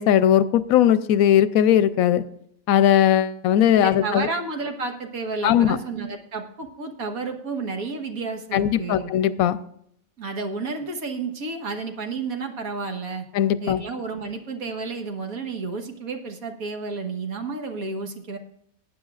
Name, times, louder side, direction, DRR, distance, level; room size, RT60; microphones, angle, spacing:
voice 1, 0.0-2.2 2.7-4.3 5.4-5.8 8.5-9.6 13.3-13.8, left 10 dB, 90° left, 15 dB, 1.0 m, -19 dB
voice 2, 3.8-9.1 10.2-13.2 13.6-18.4, right 4 dB, 85° right, 4 dB, 1.8 m, -31 dB
19.0 x 9.3 x 2.4 m, 0.72 s
omnidirectional pair, 1.5 m